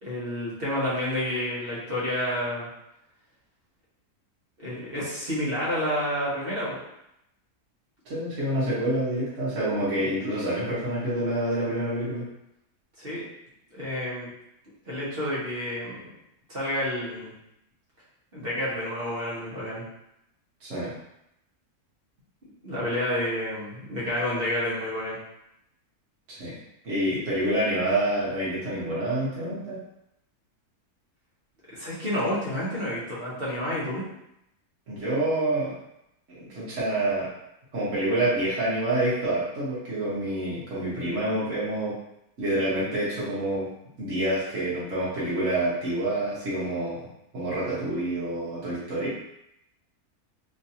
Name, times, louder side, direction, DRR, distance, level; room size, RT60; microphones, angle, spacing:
voice 1, 0.0-2.7 4.6-6.8 13.0-13.2 13.7-14.3 14.8-16.1 16.5-17.3 18.3-19.8 22.6-25.2 31.7-34.0, left 1 dB, 40° right, -8 dB, 1.3 m, -29 dB
voice 2, 8.0-12.3 20.6-20.9 26.3-26.5 26.8-29.8 34.9-35.7 36.3-37.3 37.7-41.9 42.4-43.7 44.0-47.1 47.3-49.1, right 1 dB, 55° right, -9 dB, 1.5 m, -27 dB
3.7 x 2.6 x 2.8 m, 0.83 s
omnidirectional pair, 1.6 m